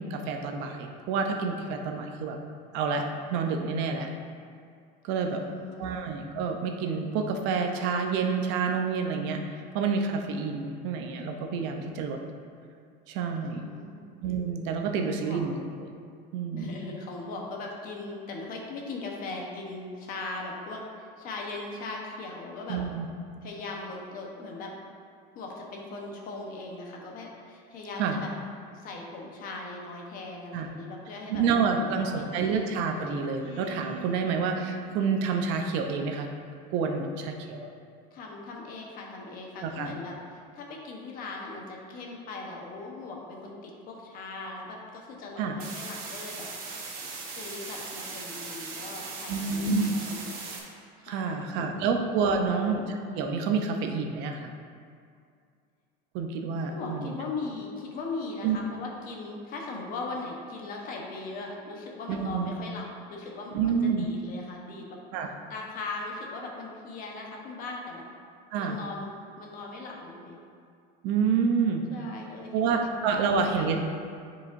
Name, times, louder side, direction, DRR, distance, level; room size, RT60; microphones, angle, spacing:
voice 1, 0.0-2.4 2.7-3.0 3.3-4.1 5.0-5.4 5.8-12.2 13.1-13.6 14.2-15.5 16.3-16.7 22.7-23.1 28.0-28.2 30.5-30.7 31.3-36.3 36.7-37.7 39.6-39.9 45.4-45.6 49.3-49.9 51.1-52.8 53.1-54.5 56.1-57.2 58.4-58.6 62.1-62.5 63.5-64.1 65.1-65.3 68.5-68.8 71.0-71.8 72.5-73.8, right 5 dB, 60° right, 3 dB, 0.7 m, -28 dB
voice 2, 5.1-6.0 13.4-14.0 15.0-15.4 16.6-22.8 23.4-24.7 25.3-28.3 28.7-31.4 31.7-32.5 38.1-46.5 47.2-50.4 51.1-51.9 52.2-52.7 56.7-65.0 65.5-68.0 68.6-70.4 71.9-73.8, left 3 dB, 45° left, -1 dB, 1.1 m, -39 dB
Speech synthesizer, 31.7-35.3, right 1 dB, 70° left, 1.2 m, -46 dB
sound 1, 45.6-50.6, right 4 dB, 45° right, 1.3 m, -39 dB
9.7 x 4.9 x 2.6 m, 2.3 s
cardioid pair, 160°, 21 cm